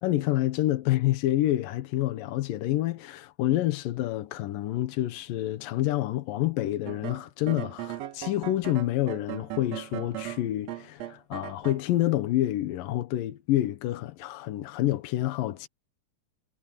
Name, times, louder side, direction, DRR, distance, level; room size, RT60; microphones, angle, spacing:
voice 1, 0.0-15.7, left 14 dB, 85° left, 2.7 m, -28 dB
sound 1, 6.9-11.8, right 14 dB, 65° right, 1.8 m, -38 dB
omnidirectional pair, 3.9 m